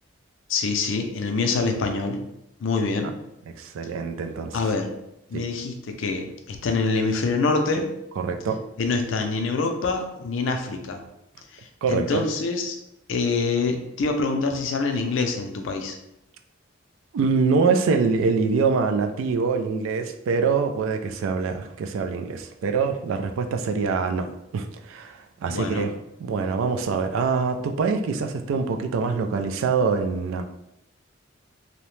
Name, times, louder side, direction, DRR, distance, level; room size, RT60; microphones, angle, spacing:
voice 1, 0.5-2.2 2.6-3.1 4.5-4.9 5.3-7.9 8.8-11.0 11.8-12.8 13.1-16.0 25.5-25.9, left 4 dB, 70° left, 4 dB, 0.4 m, -25 dB
voice 2, 3.5-4.6 5.3-5.4 8.2-8.6 11.8-12.2 17.1-24.3 24.5-25.9 26.2-30.4, right 5 dB, 80° right, 6 dB, 0.3 m, -24 dB
2.7 x 2.1 x 3.0 m, 0.84 s
head